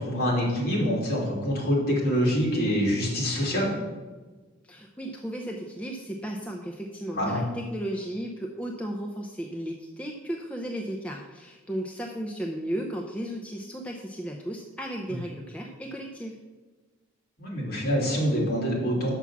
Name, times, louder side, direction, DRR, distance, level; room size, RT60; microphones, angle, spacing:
voice 1, 0.0-3.7 7.1-7.4 17.4-19.2, equal, 50° left, -3 dB, 2.6 m, -25 dB
voice 2, 4.6-16.4, right 1 dB, 5° left, 0 dB, 0.5 m, -35 dB
6.0 x 5.8 x 7.1 m, 1.3 s
head